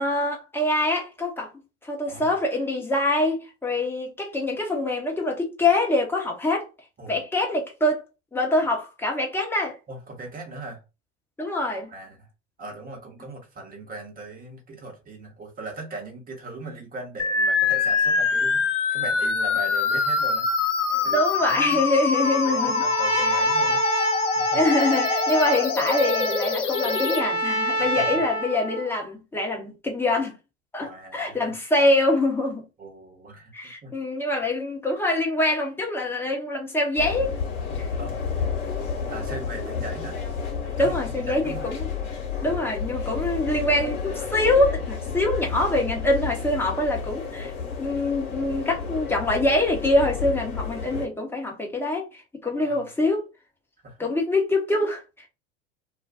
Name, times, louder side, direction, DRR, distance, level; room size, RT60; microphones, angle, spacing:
voice 1, 0.0-1.5 1.8-6.7 7.1-8.0 8.3-9.7 11.4-11.9 20.9-22.8 23.1-23.4 24.5-30.3 30.7-32.6 33.5-37.3 37.8-37.9 40.8-41.9 42.4-47.5 47.8-53.2 54.0-55.0, left 1 dB, 5° left, 1.0 m, -24 dB
voice 2, 9.9-10.8 11.9-12.3 12.6-20.5 21.0-21.8 22.4-24.6 27.8-28.2 30.8-31.5 32.8-33.5 33.8-33.9 38.0-38.2 39.1-40.2 40.8-41.6 52.5-52.8 53.8-54.0, right 2 dB, 25° right, 1.1 m, -39 dB
sound 1, 17.2-27.2, left 5 dB, 85° left, 0.5 m, -24 dB
Trumpet, 22.1-28.9, right 1 dB, 80° right, 1.0 m, -27 dB
sound 2, 37.0-51.1, left 6 dB, 50° left, 1.2 m, -31 dB
2.5 x 2.4 x 2.5 m
figure-of-eight pair, 80°, 35 cm